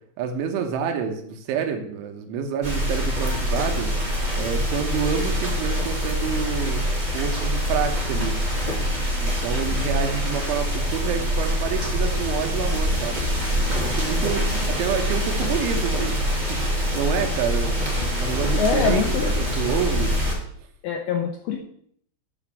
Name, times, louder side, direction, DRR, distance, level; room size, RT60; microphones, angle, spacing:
voice 1, 0.2-4.0 4.4-6.9 7.1-8.4 9.2-13.3 13.8-20.2, right 7 dB, 80° right, 4 dB, 3.6 m, -28 dB
sound 1, 2.6-20.3, equal, 35° right, 0.7 m, -24 dB
voice 2, 9.7-10.2 18.6-19.3 20.8-21.6, left 5 dB, 80° left, 2 dB, 2.2 m, -25 dB
10.0 x 4.8 x 7.5 m, 0.65 s
omnidirectional pair, 5.6 m